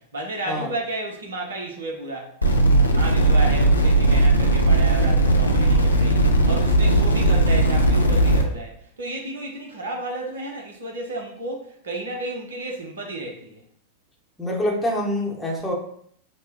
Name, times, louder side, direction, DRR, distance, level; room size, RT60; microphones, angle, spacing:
voice 1, 0.1-2.3 2.9-8.7 9.0-13.6, right 1 dB, 65° right, 1 dB, 0.9 m, -32 dB
sound 1, 2.4-8.4, right 2 dB, 80° left, 0.5 m, -17 dB
voice 2, 14.4-15.7, left 1 dB, 5° left, -2 dB, 0.9 m, -25 dB
5.7 x 2.2 x 3.0 m, 0.64 s
figure-of-eight pair, 90°, 0 cm